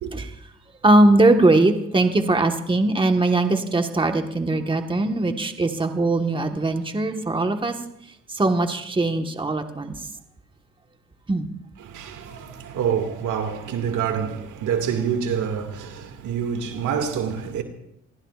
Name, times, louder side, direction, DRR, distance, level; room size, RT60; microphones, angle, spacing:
voice 1, 0.8-7.7 8.3-9.9 11.3-11.5, right 2 dB, 15° right, 1.4 m, -20 dB
voice 2, 11.8-17.6, right 7 dB, 80° right, 2.1 m, -27 dB
27.5 x 19.0 x 2.5 m
cardioid pair, 90°, 30 cm